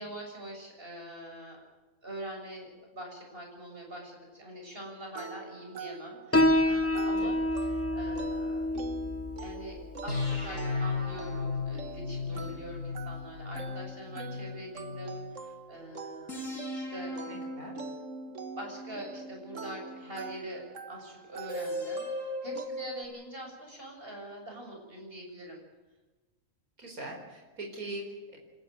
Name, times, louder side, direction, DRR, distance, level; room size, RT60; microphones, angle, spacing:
voice 1, 0.0-1.6 2.0-8.8 9.4-16.4 16.7-17.2 18.3-25.6, equal, 40° right, 1 dB, 7.3 m, -44 dB
sound 1, 5.1-22.7, right 5 dB, 60° right, 1.9 m, -45 dB
Piano, 6.3-13.4, left 1 dB, 20° left, 0.3 m, -30 dB
sound 2, 7.4-9.4 10.1-15.3 16.3-20.5 21.5-23.1, left 3 dB, 65° left, 5.8 m, -37 dB
voice 2, 12.3-12.6 17.3-17.8 26.8-28.4, right 2 dB, 80° right, 1 dB, 4.9 m, -42 dB
28.5 x 14.0 x 9.3 m, 1.2 s
omnidirectional pair, 1.5 m